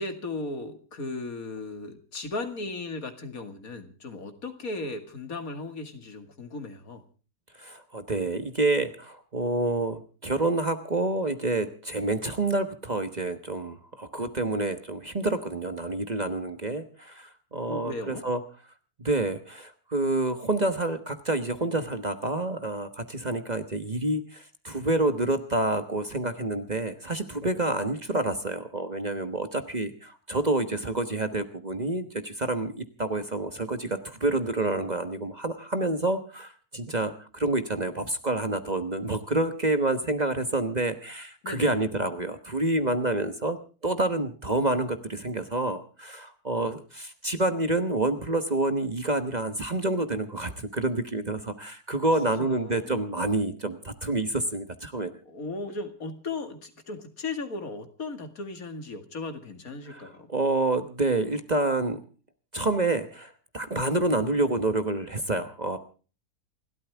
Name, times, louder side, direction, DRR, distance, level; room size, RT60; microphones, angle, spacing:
voice 1, 0.0-7.0 17.7-18.2 41.4-41.8 52.4-53.1 55.3-60.3, left 3 dB, 70° left, 8 dB, 2.5 m, -36 dB
voice 2, 7.6-18.4 19.0-43.6 43.8-55.1 59.9-62.0 62.5-65.8, right 2 dB, 30° right, 9 dB, 1.2 m, -28 dB
28.5 x 13.0 x 3.5 m, 0.38 s
omnidirectional pair, 1.6 m